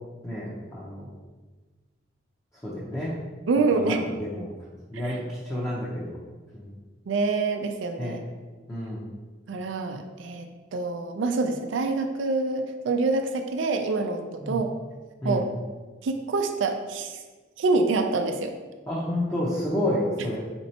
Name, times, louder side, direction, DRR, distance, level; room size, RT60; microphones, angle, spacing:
voice 1, 0.2-1.1 2.6-3.1 3.6-4.5 4.9-6.2 6.5-6.7 8.0-8.2 8.7-9.1 14.4-14.6 15.2-15.5 18.9-20.4, left 1 dB, 15° left, -7 dB, 0.6 m, -30 dB
voice 2, 3.5-4.0 5.0-5.1 7.1-8.2 9.5-14.7 15.2-15.5 16.0-17.2 17.6-18.5, right 3 dB, 85° right, 6 dB, 0.4 m, -26 dB
4.3 x 4.1 x 2.8 m, 1.3 s
head